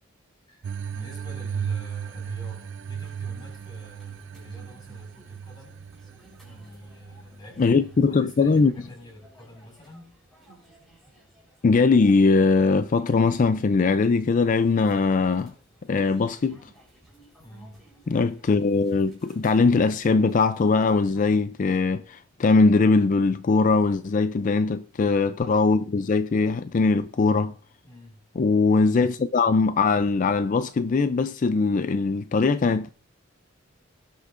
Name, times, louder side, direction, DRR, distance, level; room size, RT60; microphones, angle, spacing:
voice 1, 0.5-5.9 6.4-10.1 17.4-17.8 24.4-24.8 27.8-28.2, left 1 dB, 20° left, 4.9 m, -47 dB
sound 1, 0.6-8.7, right 7 dB, 65° right, 0.4 m, -36 dB
sound 2, 3.0-21.4, right 1 dB, ahead, 4.5 m, -56 dB
voice 2, 7.6-8.7 11.6-15.5 15.9-16.6 18.1-27.5 28.4-32.9, left 4 dB, 40° left, 0.4 m, -21 dB
18.0 x 8.2 x 2.5 m
head